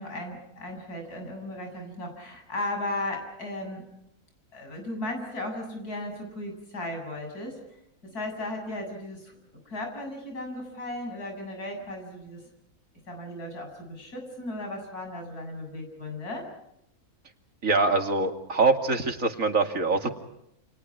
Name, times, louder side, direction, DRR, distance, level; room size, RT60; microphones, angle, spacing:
voice 1, 0.0-3.8 4.5-7.6 8.0-9.4 9.6-12.4 13.1-16.5, left 1 dB, 85° left, 3 dB, 8.2 m, -36 dB
voice 2, 17.6-20.1, right 3 dB, 60° right, 4 dB, 2.8 m, -24 dB
29.5 x 28.5 x 4.8 m, 0.80 s
omnidirectional pair, 1.6 m